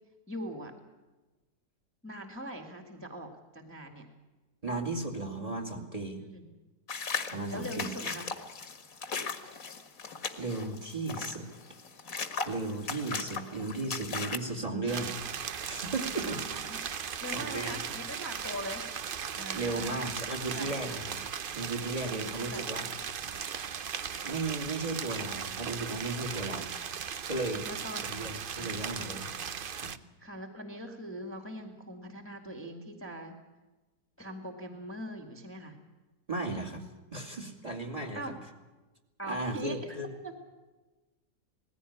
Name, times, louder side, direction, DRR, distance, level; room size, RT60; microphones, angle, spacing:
voice 1, 0.3-0.7 2.0-4.0 6.2-6.5 7.5-8.3 16.2-16.8 17.2-18.8 19.3-20.0 20.5-21.0 22.1-22.7 27.6-28.9 30.2-33.3 34.2-35.8 38.1-38.3 39.2-40.0 40.2-40.3, equal, 5° left, 3 dB, 1.8 m, -42 dB
voice 2, 4.6-6.2 7.3-7.9 10.4-11.5 12.4-16.4 16.9-17.0 17.3-17.8 19.5-21.2 21.5-22.9 24.2-26.7 27.3-27.7 28.0-29.3 29.7-29.9 36.3-36.9 37.1-38.2 39.3-40.1, right 2 dB, 20° right, 5 dB, 2.4 m, -35 dB
sound 1, 6.9-14.4, left 5 dB, 55° left, 1.9 m, -37 dB
sound 2, 14.9-30.0, right 7 dB, 55° right, 0.6 m, -37 dB
19.5 x 15.5 x 10.0 m, 1.2 s
omnidirectional pair, 1.8 m